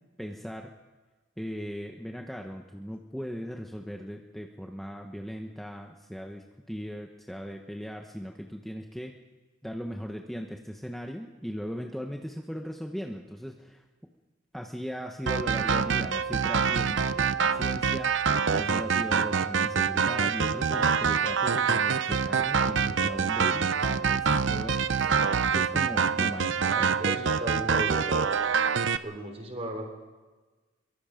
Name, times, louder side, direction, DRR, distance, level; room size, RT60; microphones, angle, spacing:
voice 1, 0.2-0.7 1.4-9.1 9.6-13.8 14.5-26.9, equal, ahead, 2 dB, 1.1 m, -38 dB
sound 1, 15.3-29.0, right 6 dB, 80° right, 0.7 m, -26 dB
voice 2, 26.6-28.4 29.0-29.9, equal, 35° right, 4 dB, 3.6 m, -36 dB
23.5 x 23.0 x 5.2 m, 1.3 s
head